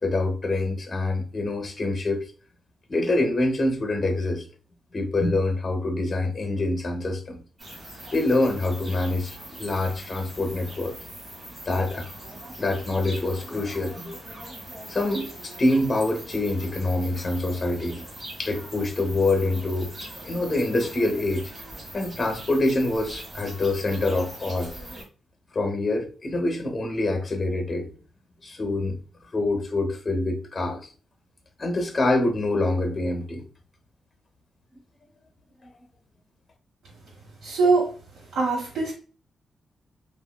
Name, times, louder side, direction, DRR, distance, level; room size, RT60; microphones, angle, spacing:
voice 1, 0.0-2.2 2.9-4.4 4.9-7.4 8.1-10.9 11.6-12.1 12.6-14.1 14.9-18.0 18.4-19.9 20.2-21.5 21.9-24.7 25.5-27.9 28.4-29.0 29.3-30.9 31.6-33.4 35.6-35.7, left 2 dB, 30° left, 0.8 m, -25 dB
sound 1, 7.6-25.0, right 1 dB, 25° right, 1.5 m, -41 dB
voice 2, 37.4-37.9 38.3-38.9, right 4 dB, 70° right, 1.2 m, -22 dB
3.5 x 2.5 x 2.2 m
wide cardioid pair, 135°, 0 cm